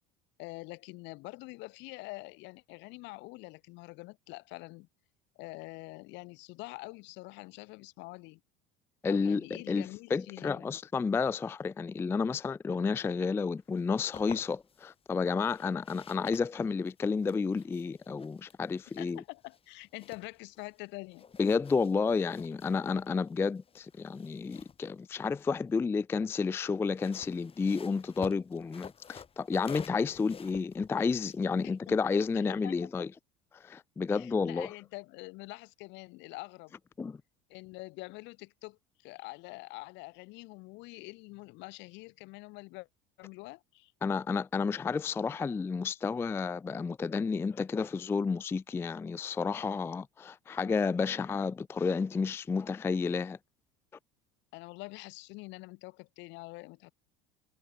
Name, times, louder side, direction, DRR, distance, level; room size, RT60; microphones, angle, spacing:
voice 1, 0.4-4.9 5.4-8.4 9.1-10.8 19.0-21.2 31.6-32.0 32.3-32.7 34.1-36.7 37.5-42.9 43.2-43.9 54.5-56.9, left 24 dB, 65° left, 2.5 m, -45 dB
voice 2, 9.0-19.2 21.4-33.1 33.5-34.7 37.0-37.2 44.0-53.4, left 5 dB, 10° left, 0.3 m, -31 dB
sound 1, 13.7-14.9 15.4-20.8 21.1-25.8 26.8-32.3, left 6 dB, 30° left, 4.1 m, -50 dB
supercardioid pair, 110°, 20 cm